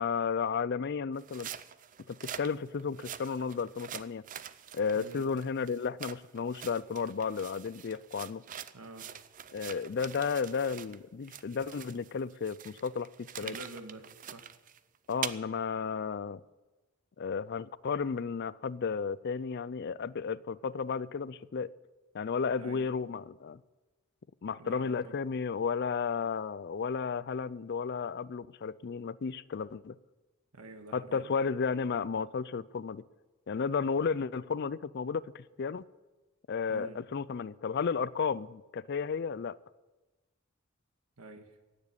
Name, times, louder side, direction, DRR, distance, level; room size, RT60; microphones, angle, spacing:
voice 1, 0.0-1.5 2.1-4.2 4.7-8.4 9.5-13.6 15.1-16.4 17.2-21.7 22.1-23.6 24.4-29.9 30.9-33.0 33.5-35.8 36.5-39.6, left 5 dB, 50° left, 18 dB, 0.4 m, -33 dB
sound 1, 1.1-11.0 11.2-15.3, right 9 dB, 35° right, 0.5 m, -44 dB
voice 2, 4.9-5.2 8.7-9.1 13.4-14.5 22.6-22.9 24.6-25.2 30.5-31.3 36.7-37.0 41.2-41.6, right 2 dB, 85° right, 7 dB, 1.6 m, -47 dB
16.5 x 7.4 x 9.8 m, 1.2 s
head